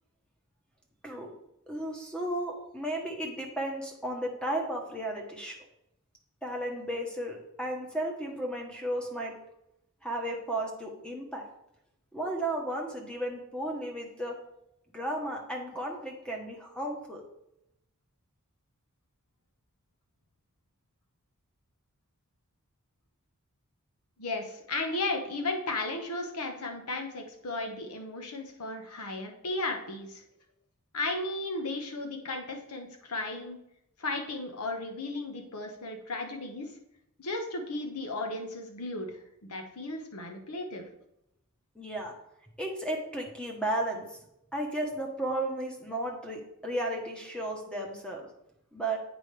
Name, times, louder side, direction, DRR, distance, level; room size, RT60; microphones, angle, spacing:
voice 1, 1.7-5.6 6.4-9.4 10.0-11.4 12.1-14.4 14.9-17.2 41.7-42.1 42.6-44.2 44.5-48.3 48.7-49.0, right 1 dB, 5° left, 1 dB, 1.0 m, -34 dB
voice 2, 24.2-30.2 30.9-33.6 34.0-36.7 37.2-39.1 39.4-40.9, left 2 dB, 85° left, 4 dB, 1.1 m, -35 dB
8.2 x 5.0 x 3.3 m, 0.81 s
head